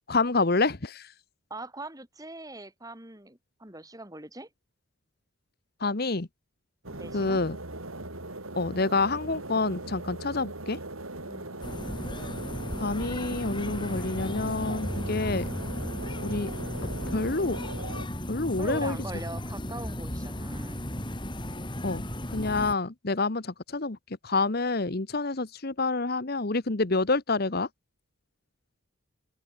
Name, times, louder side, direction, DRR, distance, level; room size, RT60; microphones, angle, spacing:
voice 1, 0.1-1.1 5.8-6.3 7.1-7.6 8.5-10.8 12.8-15.5 16.2-16.5 17.1-17.6 18.3-19.0 21.8-22.0 22.3-24.0 24.2-27.7, left 3 dB, 50° left, 1.2 m, -28 dB
voice 2, 1.5-4.5 6.9-7.4 11.2-11.7 18.6-20.8, right 2 dB, 15° right, 4.5 m, -42 dB
sound 1, 6.8-18.1, right 2 dB, 85° right, 6.8 m, -40 dB
sound 2, 11.6-22.7, left 1 dB, 25° left, 4.3 m, -35 dB
open air
head